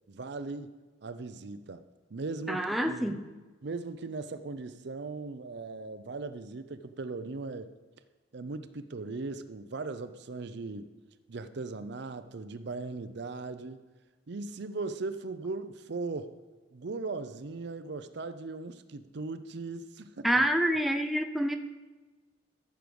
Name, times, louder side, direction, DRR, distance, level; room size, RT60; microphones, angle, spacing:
voice 1, 0.1-0.7 1.0-1.8 2.1-3.1 3.6-7.7 8.3-10.9 11.3-13.8 14.3-16.3 16.7-20.3, right 3 dB, 60° right, 11 dB, 0.6 m, -38 dB
voice 2, 2.5-3.2 20.2-21.6, equal, ahead, 4 dB, 0.5 m, -27 dB
14.0 x 6.3 x 5.2 m, 1.3 s
head